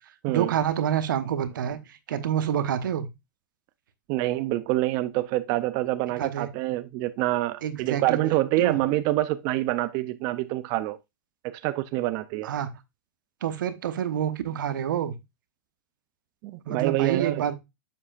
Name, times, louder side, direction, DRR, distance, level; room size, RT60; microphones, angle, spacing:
voice 1, 0.3-3.1 6.2-6.5 7.6-8.2 8.6-8.8 12.4-12.7 13.4-15.1 16.7-17.6, right 9 dB, 85° right, 0.9 m, -27 dB
voice 2, 4.1-11.0 11.4-12.5 16.4-17.4, right 16 dB, 35° right, 0.4 m, -26 dB
7.2 x 5.5 x 2.4 m
supercardioid pair, 155°, 10 cm